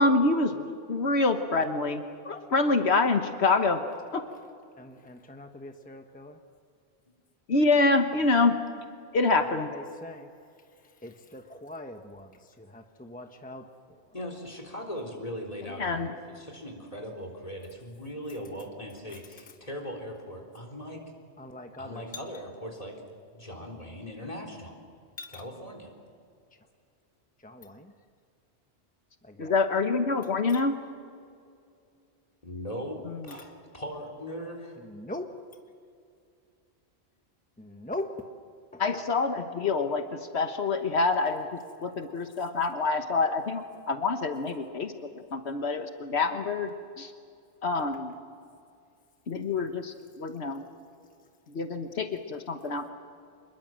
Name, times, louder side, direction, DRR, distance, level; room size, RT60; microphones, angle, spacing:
voice 1, 0.0-3.8 4.1-4.2 7.5-8.6 9.1-9.7 15.8-16.1 29.4-30.8 38.8-44.9 45.3-47.1 47.6-48.1 49.3-50.6 51.5-52.9, left 3 dB, 80° left, 6 dB, 1.5 m, -26 dB
voice 2, 4.8-6.4 9.4-10.3 11.0-13.6 21.4-22.0 25.2-25.4 27.4-27.9 29.2-29.6 30.5-30.6 33.4-33.5 34.8-35.3 37.6-38.3 38.7-39.0, left 1 dB, 10° left, 5 dB, 1.1 m, -41 dB
voice 3, 14.1-21.0 21.8-23.0 23.3-24.8 25.3-25.9 32.4-34.8, equal, 35° left, 2 dB, 3.9 m, -39 dB
26.5 x 22.0 x 7.6 m, 2.4 s
omnidirectional pair, 1.1 m